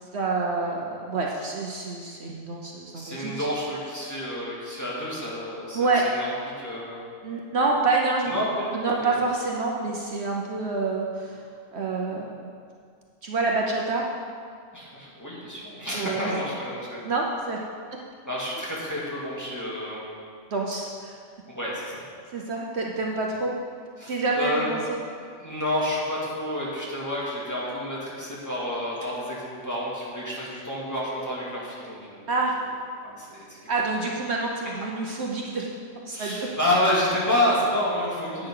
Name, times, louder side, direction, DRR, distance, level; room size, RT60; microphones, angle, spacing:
voice 1, 0.1-3.5 5.7-6.1 7.2-8.3 8.7-11.4 11.7-12.5 13.2-14.0 15.9-16.2 17.0-17.6 20.5-21.1 22.3-23.5 24.1-25.0 32.3-32.6 33.7-35.7 36.1-36.5, right 3 dB, 60° right, -1 dB, 1.1 m, -27 dB
voice 2, 2.9-6.3 6.6-7.0 8.3-9.2 14.7-17.0 18.3-20.1 21.5-22.0 24.0-24.7 25.4-32.3 33.0-33.6 36.1-38.5, left 1 dB, 15° left, -7 dB, 2.3 m, -29 dB
11.0 x 9.0 x 3.8 m, 2.1 s
omnidirectional pair, 1.3 m